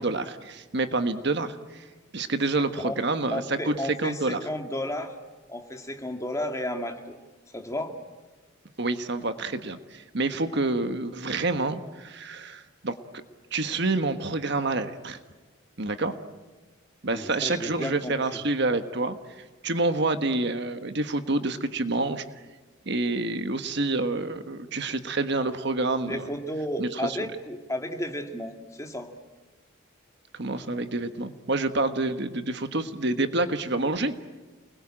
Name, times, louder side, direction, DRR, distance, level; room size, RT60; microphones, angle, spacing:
voice 1, 0.0-1.8 2.1-4.4 8.8-13.0 13.5-15.2 15.8-16.1 17.0-22.2 22.9-26.3 26.8-27.2 30.3-34.1, right 2 dB, 55° right, 9 dB, 1.4 m, -28 dB
voice 2, 2.6-3.0 3.3-5.1 5.5-7.2 7.5-7.9 17.0-18.4 26.0-29.1, left 1 dB, 15° left, 4 dB, 2.2 m, -33 dB
29.5 x 21.0 x 8.9 m, 1.2 s
head